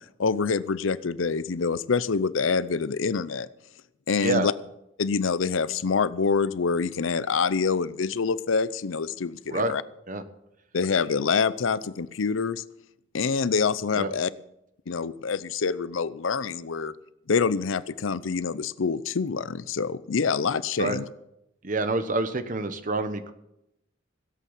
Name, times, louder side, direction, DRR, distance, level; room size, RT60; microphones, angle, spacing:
voice 1, 0.2-3.5 4.1-4.5 5.0-9.8 10.7-12.6 13.1-14.3 14.9-16.9 17.3-21.0, left 5 dB, 80° left, 17 dB, 0.6 m, -26 dB
voice 2, 4.2-4.5 9.5-9.7 10.1-10.2 13.9-14.1 20.8-21.0 21.6-23.3, right 2 dB, 40° right, 10 dB, 1.2 m, -27 dB
16.5 x 8.4 x 7.3 m, 0.84 s
head